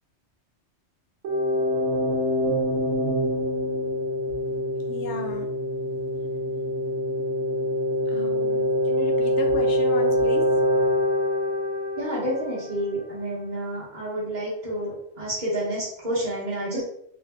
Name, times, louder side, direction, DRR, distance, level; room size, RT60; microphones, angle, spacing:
sound 1, 1.2-12.9, left 1 dB, 80° right, 0.9 m, -25 dB
voice 1, 4.9-5.5 8.1-10.6 16.7-16.8, left 2 dB, 80° left, 2 dB, 0.9 m, -34 dB
voice 2, 12.0-16.8, right 1 dB, 45° right, -9 dB, 1.1 m, -29 dB
2.9 x 2.5 x 3.3 m, 0.72 s
omnidirectional pair, 1.2 m